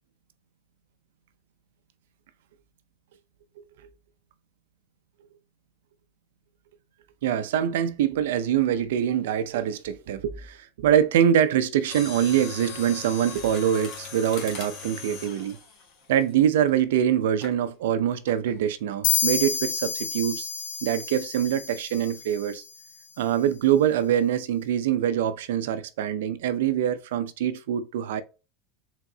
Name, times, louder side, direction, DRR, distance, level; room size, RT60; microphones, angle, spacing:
voice 1, 7.2-15.6 16.1-20.5 20.8-22.6 23.2-28.2, right 10 dB, 80° right, 0.5 m, -24 dB
Mechanisms, 11.8-16.8 17.4-17.6 18.3-18.6 18.9-19.0, left 5 dB, 45° left, 1.6 m, -40 dB
sound 1, 19.0-22.6, left 7 dB, 80° left, 0.7 m, -29 dB
4.7 x 3.7 x 2.8 m
supercardioid pair, 160°, 0 cm